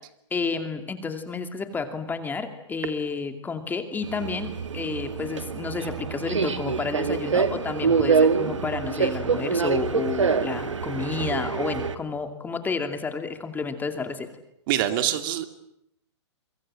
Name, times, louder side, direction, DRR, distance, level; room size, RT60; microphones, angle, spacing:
voice 1, 0.3-14.3, left 4 dB, 10° left, 7 dB, 2.5 m, -31 dB
Subway metro underground, 4.0-12.0, right 5 dB, 85° right, 1.9 m, -25 dB
voice 2, 14.7-15.5, right 12 dB, 45° right, 9 dB, 2.5 m, -24 dB
29.0 x 24.0 x 7.6 m, 0.80 s
hypercardioid pair, 125°, 15 cm